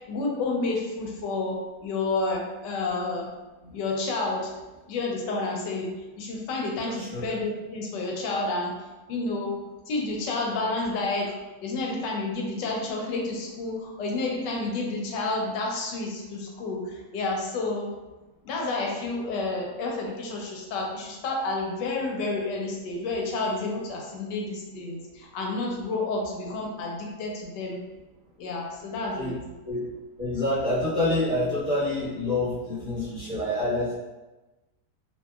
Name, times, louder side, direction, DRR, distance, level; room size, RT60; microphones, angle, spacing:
voice 1, 0.0-3.3 3.7-4.5 4.9-5.9 6.2-8.8 9.1-9.6 9.9-11.3 11.6-17.9 18.4-27.8 28.4-29.3, left 3 dB, 85° left, -1 dB, 1.2 m, -30 dB
voice 2, 6.8-7.2 29.1-29.3 29.7-29.9 30.2-34.0, left 1 dB, 25° right, -14 dB, 1.0 m, -27 dB
2.7 x 2.5 x 2.3 m, 1.1 s
omnidirectional pair, 1.8 m